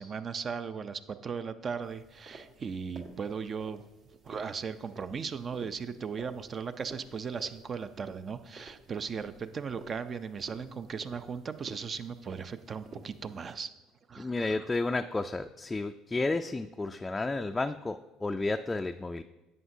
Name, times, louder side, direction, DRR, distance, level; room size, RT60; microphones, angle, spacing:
voice 1, 0.0-3.8 4.2-13.7 14.1-14.7, right 6 dB, 40° right, 11 dB, 0.5 m, -37 dB
sound 1, 1.8-13.5, right 3 dB, 65° right, 1.5 m, -52 dB
voice 2, 14.2-19.2, left 3 dB, 20° left, 6 dB, 0.3 m, -32 dB
11.0 x 7.7 x 2.7 m, 1.1 s
hypercardioid pair, 65°, 0 cm